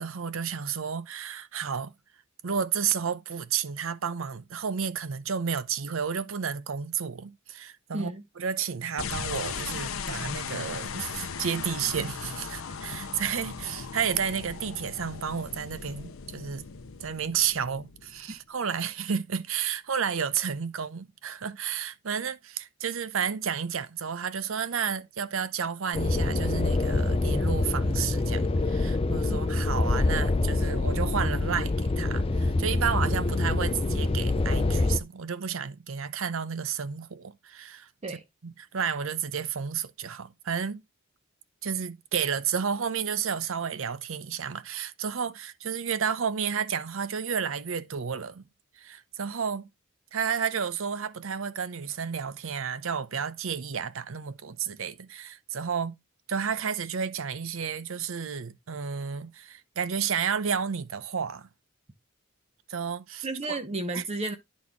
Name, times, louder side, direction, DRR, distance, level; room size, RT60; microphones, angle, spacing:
voice 1, 0.0-1.9 2.4-8.1 8.4-16.7 17.0-37.9 38.4-40.8 41.6-48.4 48.8-49.7 50.1-55.9 56.3-61.5 62.7-63.6 63.9-64.0, right 7 dB, 70° right, 0.7 m, -31 dB
voice 2, 7.9-8.3 29.3-29.5 38.0-38.2 63.2-64.4, right 2 dB, 30° right, 0.7 m, -33 dB
sound 1, 9.0-18.4, left 6 dB, 75° left, 0.8 m, -37 dB
sound 2, 25.9-35.0, left 2 dB, 25° left, 0.5 m, -26 dB
10.5 x 4.1 x 3.5 m
head